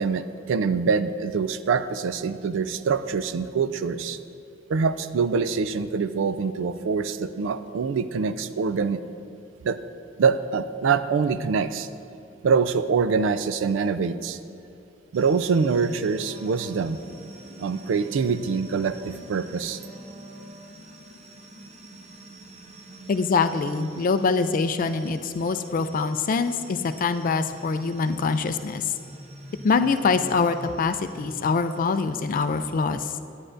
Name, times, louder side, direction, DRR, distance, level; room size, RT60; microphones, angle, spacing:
voice 1, 0.0-4.2 4.7-9.0 9.6-9.8 10.2-11.9 12.4-14.4 15.1-17.0 17.6-19.8, right 5 dB, 75° right, 13 dB, 0.3 m, -24 dB
sound 1, 15.1-32.8, right 1 dB, 35° right, 0.6 m, -46 dB
Wind instrument woodwind instrument, 16.0-21.1, right 1 dB, 55° right, 1.6 m, -46 dB
voice 2, 23.1-28.8 29.6-33.1, left 4 dB, 45° left, 10 dB, 0.4 m, -24 dB
10.0 x 9.6 x 2.6 m, 2.6 s
head